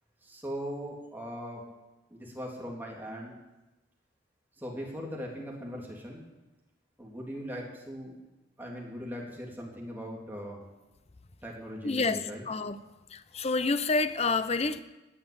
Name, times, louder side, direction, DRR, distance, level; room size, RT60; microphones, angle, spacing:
voice 1, 0.2-1.6 2.1-3.4 4.6-6.2 7.0-8.1 8.6-10.6 11.4-12.4, equal, 10° right, 3.4 m, -39 dB
voice 2, 11.8-12.8 13.1-14.8, left 3 dB, 35° left, 0.7 m, -28 dB
19.0 x 6.8 x 9.0 m
head